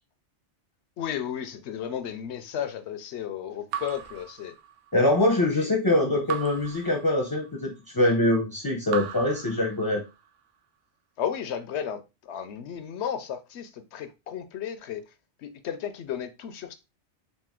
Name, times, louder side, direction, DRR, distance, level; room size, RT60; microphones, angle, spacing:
voice 1, 1.0-4.5 5.5-5.7 11.2-15.0 15.4-16.7, left 9 dB, 70° left, 0.8 m, -34 dB
Raindrop / Drip, 3.7-5.1 6.3-7.7 8.9-10.3, right 9 dB, 85° right, 0.9 m, -38 dB
voice 2, 4.9-10.0, left 1 dB, 25° left, 0.6 m, -24 dB
4.1 x 2.5 x 3.6 m
omnidirectional pair, 1.2 m